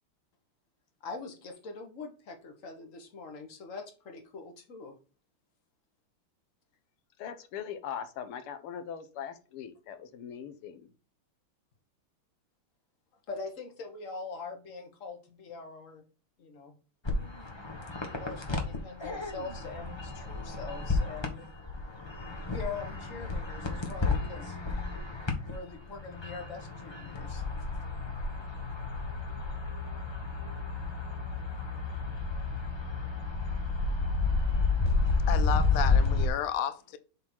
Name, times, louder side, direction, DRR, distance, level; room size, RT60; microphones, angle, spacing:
voice 1, 1.0-4.9 13.3-16.0 16.4-16.7 18.1-21.5 22.5-24.6 25.4-27.4, left 4 dB, 40° left, 1.6 m, -43 dB
voice 2, 7.2-10.9, left 8 dB, 90° left, 1.8 m, -40 dB
sound 1, 17.0-25.5 25.9-36.3, left 3 dB, 20° left, 0.8 m, -31 dB
voice 3, 34.7-37.0, left 9 dB, 70° left, 0.8 m, -33 dB
7.5 x 3.9 x 4.5 m
omnidirectional pair, 2.4 m